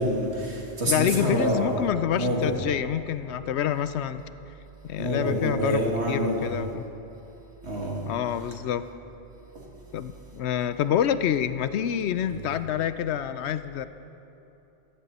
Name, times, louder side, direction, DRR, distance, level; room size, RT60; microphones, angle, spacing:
voice 1, 0.0-1.7 2.1-2.5 5.0-6.5 7.6-8.0 9.5-9.6 12.3-12.4, equal, 80° right, -2 dB, 2.6 m, -27 dB
voice 2, 0.9-4.2 4.8-6.8 8.0-8.8 9.9-13.9, left 9 dB, 80° left, 13 dB, 0.9 m, -27 dB
17.0 x 14.5 x 4.1 m, 2.9 s
omnidirectional pair, 1.1 m